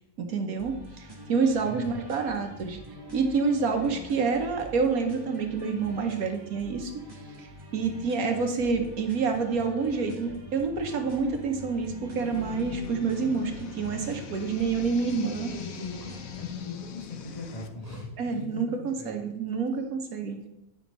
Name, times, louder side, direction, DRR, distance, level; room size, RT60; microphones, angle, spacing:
voice 1, 0.2-2.8 3.1-6.9 7.4-7.5 7.7-15.5 18.2-20.5, right 5 dB, 70° right, 4 dB, 1.4 m, -28 dB
sound 1, 0.6-16.6, left 1 dB, 15° right, 1.8 m, -45 dB
voice 2, 1.6-2.0 15.4-16.1 16.4-19.2, left 3 dB, 25° left, -2 dB, 1.7 m, -40 dB
sound 2, 12.2-17.7, left 8 dB, 70° left, 1.1 m, -41 dB
9.5 x 6.1 x 4.0 m, 0.91 s
omnidirectional pair, 1.6 m